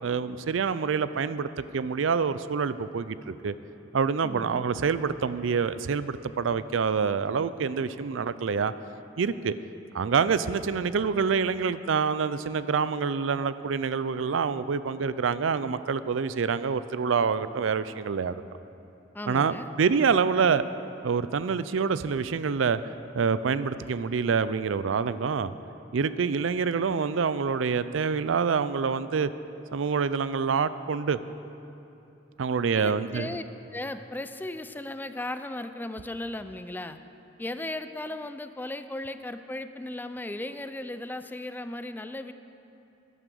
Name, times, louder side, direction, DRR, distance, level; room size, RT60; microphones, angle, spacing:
voice 1, 0.0-3.5 3.9-8.7 9.2-9.5 9.9-18.4 19.3-20.6 21.0-22.8 23.1-25.5 25.9-29.3 29.7-31.2 32.4-33.3, right 5 dB, 80° right, 14 dB, 0.4 m, -26 dB
voice 2, 4.2-4.7 19.1-19.7 32.7-33.4 33.7-37.0 37.4-42.3, left 1 dB, 10° left, 10 dB, 0.4 m, -36 dB
11.0 x 11.0 x 6.9 m, 2.9 s
head